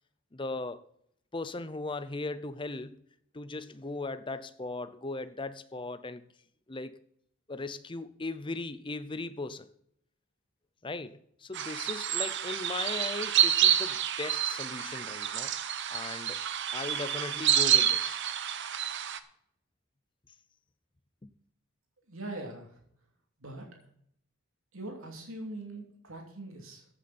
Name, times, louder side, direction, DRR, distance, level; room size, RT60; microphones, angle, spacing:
voice 1, 0.3-0.8 1.3-3.0 3.3-6.2 6.7-6.9 7.5-9.7 10.8-15.5 15.9-16.4 16.7-18.2 21.2-21.3, left 3 dB, 20° left, 0.6 m, -38 dB
sound 1, 11.5-19.2, right 9 dB, 55° right, 0.8 m, -28 dB
voice 2, 22.1-22.8 23.4-23.8 24.7-26.9, right 2 dB, 70° right, 2.9 m, -42 dB
14.5 x 8.4 x 4.3 m
head